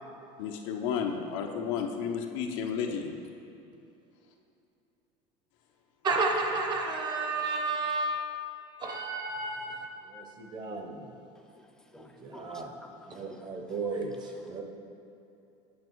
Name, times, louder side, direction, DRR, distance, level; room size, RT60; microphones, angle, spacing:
voice 1, 0.4-3.1, left 7 dB, 80° left, 3 dB, 0.7 m, -32 dB
voice 2, 6.0-8.3 8.8-11.1 12.0-12.7 13.1-14.1 14.5-14.6, right 3 dB, 25° right, 3 dB, 0.8 m, -32 dB
voice 3, 11.4-14.6, left 3 dB, 5° left, 4 dB, 0.4 m, -53 dB
8.4 x 5.9 x 4.6 m, 2.8 s
cardioid pair, 160°, 16 cm